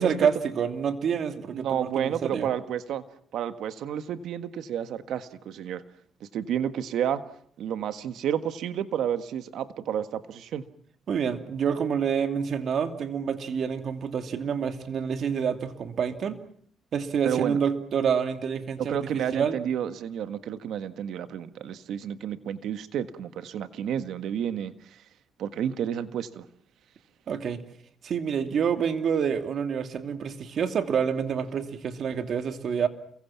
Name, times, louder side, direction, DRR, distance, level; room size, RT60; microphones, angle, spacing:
voice 1, 0.0-2.5 11.1-16.4 16.9-19.6 27.3-27.6 28.0-32.9, right 7 dB, 60° right, 7 dB, 2.7 m, -27 dB
voice 2, 1.5-3.0 3.3-5.8 6.2-7.2 7.6-10.6 17.2-17.6 18.8-25.0 25.4-26.4, right 9 dB, 75° right, 11 dB, 1.6 m, -31 dB
30.0 x 23.5 x 5.9 m, 0.62 s
cardioid pair, 90°, 0 cm